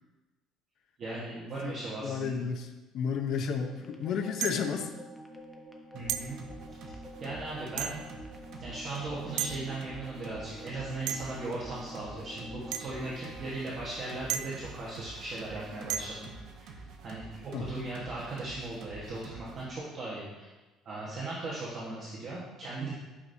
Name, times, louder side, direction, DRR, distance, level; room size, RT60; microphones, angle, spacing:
voice 1, 1.0-2.4 5.9-6.4 7.2-8.0 8.6-16.3 16.6-16.7 17.0-20.5 20.8-22.9, right 2 dB, 35° right, -7 dB, 1.2 m, -38 dB
voice 2, 2.0-4.9 17.5-17.7, left 6 dB, 50° left, 5 dB, 0.7 m, -32 dB
sound 1, 3.7-13.6, equal, 5° left, 0.6 m, -47 dB
sound 2, 4.4-4.8 6.1-6.3 7.8-8.1 9.4-9.6 11.1-11.4 12.7-12.9 14.3-14.7 15.9-16.2, right 10 dB, 75° right, 0.3 m, -34 dB
sound 3, 6.0-19.7, right 3 dB, 55° right, 0.9 m, -48 dB
9.8 x 6.0 x 2.7 m, 1.1 s
cardioid pair, 180°, 0 cm